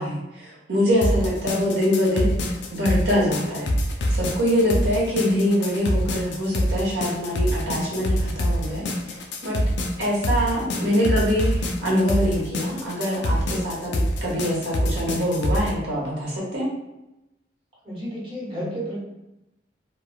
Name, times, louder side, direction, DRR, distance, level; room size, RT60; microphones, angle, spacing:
voice 1, 0.0-3.7 4.1-9.6 10.0-16.7, equal, 60° right, -5 dB, 1.1 m, -24 dB
sound 1, 1.0-15.7, equal, 60° left, 0.4 m, -25 dB
voice 2, 17.8-19.0, equal, 30° right, -7 dB, 1.1 m, -31 dB
3.1 x 2.3 x 2.2 m, 0.93 s
head